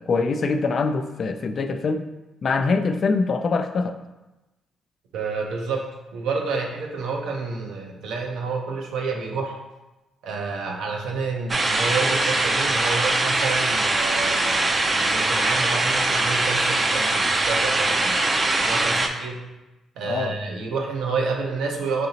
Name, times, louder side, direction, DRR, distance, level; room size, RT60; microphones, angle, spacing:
voice 1, 0.0-2.1 2.4-4.0 20.0-20.4, left 4 dB, 50° left, 8 dB, 0.3 m, -23 dB
voice 2, 5.1-9.6 10.2-19.4 20.0-22.1, right 4 dB, 85° right, 0 dB, 0.6 m, -29 dB
sound 1, 11.5-19.1, right 2 dB, 35° right, 0.5 m, -22 dB
5.1 x 2.8 x 2.8 m, 1.0 s
cardioid pair, 75°, 0 cm